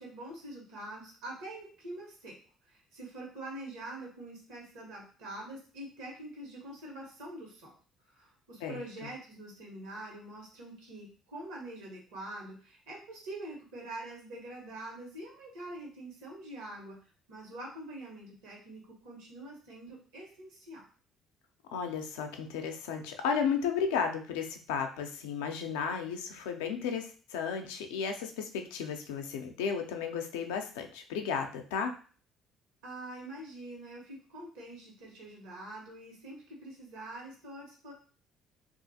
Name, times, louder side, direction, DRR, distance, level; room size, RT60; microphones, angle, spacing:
voice 1, 0.0-2.4 2.7-7.7 8.1-17.0 17.3-20.8 32.8-37.9, right 1 dB, 80° right, -1 dB, 1.1 m, -45 dB
voice 2, 21.7-31.9, left 6 dB, 85° left, 5 dB, 0.4 m, -34 dB
2.4 x 2.4 x 2.7 m, 0.40 s
hypercardioid pair, 65°, 0 cm